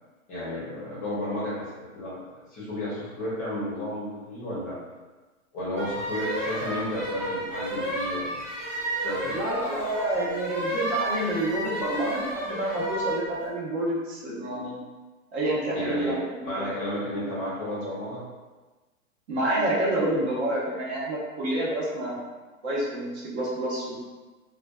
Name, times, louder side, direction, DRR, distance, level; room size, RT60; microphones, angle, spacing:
voice 1, 0.3-2.2 2.5-4.8 5.5-8.4 9.0-9.4 15.7-16.1 16.4-18.2, left 1 dB, 20° left, -9 dB, 0.6 m, -32 dB
sound 1, 5.8-13.3, right 1 dB, 15° right, 1.1 m, -31 dB
voice 2, 9.3-14.8 15.3-16.7 19.3-22.2 22.6-23.9, right 1 dB, 50° right, -5 dB, 0.9 m, -28 dB
2.4 x 2.3 x 2.3 m, 1.3 s
hypercardioid pair, 130°, 42 cm